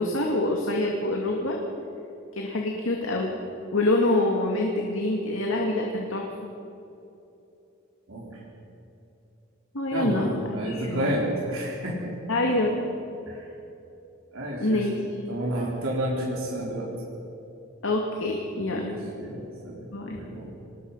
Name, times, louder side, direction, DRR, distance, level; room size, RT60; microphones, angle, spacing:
voice 1, 0.0-1.6 2.3-3.3 3.7-6.3 9.7-10.3 10.7-11.1 12.3-12.8 14.6-14.9 17.8-18.9 19.9-20.2, left 2 dB, 75° left, 0 dB, 2.4 m, -26 dB
voice 2, 8.1-8.4 9.9-12.1 13.3-13.5 14.3-14.9 15.3-16.9 18.7-19.9 20.1-20.5, right 1 dB, 90° right, -4 dB, 4.2 m, -30 dB
25.5 x 20.5 x 5.7 m, 2.8 s
head